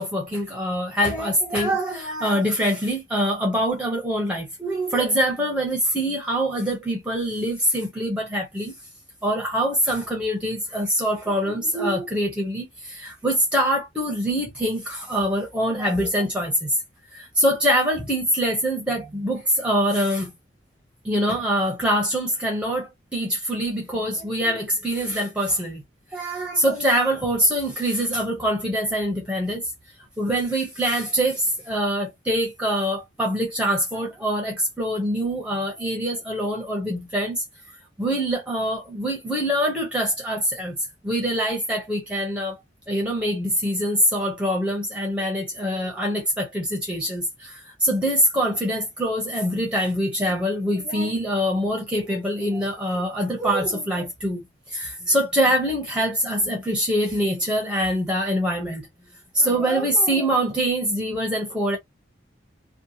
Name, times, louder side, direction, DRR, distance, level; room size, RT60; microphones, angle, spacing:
voice 1, 0.0-8.7 9.2-16.8 17.1-20.3 21.0-25.8 26.1-29.7 30.2-37.4 38.0-40.8 41.0-42.6 42.9-58.9 59.3-61.8, equal, 5° right, 0.7 m, -24 dB
2.8 x 2.2 x 2.6 m
head